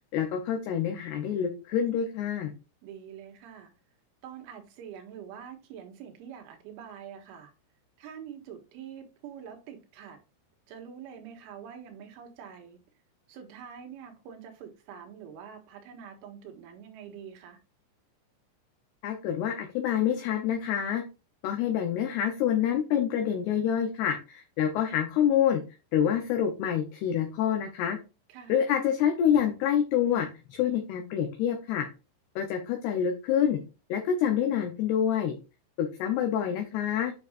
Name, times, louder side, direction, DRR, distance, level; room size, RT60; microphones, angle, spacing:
voice 1, 0.1-2.5 19.0-21.0 21.4-25.6 25.9-28.0 28.5-31.9 32.4-33.6 33.9-35.3 35.8-37.1, left 9 dB, 75° left, 2.6 m, -27 dB
voice 2, 2.8-3.7 4.2-7.5 8.0-10.2 10.7-12.8 13.3-17.6 28.3-28.6, right 8 dB, 85° right, 4.0 m, -45 dB
9.2 x 6.1 x 2.6 m
omnidirectional pair, 5.5 m